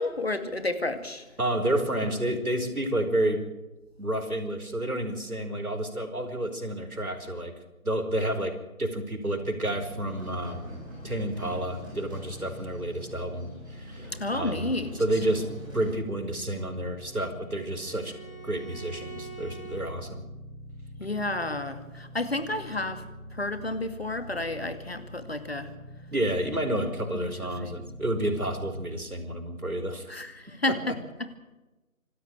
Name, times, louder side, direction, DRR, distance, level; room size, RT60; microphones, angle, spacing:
voice 1, 0.0-1.2 14.1-14.9 21.0-23.0 23.3-25.7 27.1-27.3 27.6-27.8 30.1-31.4, left 2 dB, 45° left, 10 dB, 2.3 m, -31 dB
voice 2, 1.4-3.5 4.0-7.5 7.8-8.5 8.8-10.8 11.0-14.7 15.0-18.1 18.4-20.2 26.1-30.1 30.7-30.8, right 1 dB, 85° right, 7 dB, 5.0 m, -30 dB
sound 1, 9.2-28.9, equal, 45° right, 2.5 m, -45 dB
sound 2, 10.0-15.9, equal, 15° right, 7.8 m, -47 dB
Bowed string instrument, 16.3-19.9, right 5 dB, 80° left, 7.2 m, -46 dB
26.5 x 13.0 x 9.0 m, 1.1 s
figure-of-eight pair, 175°, 42 cm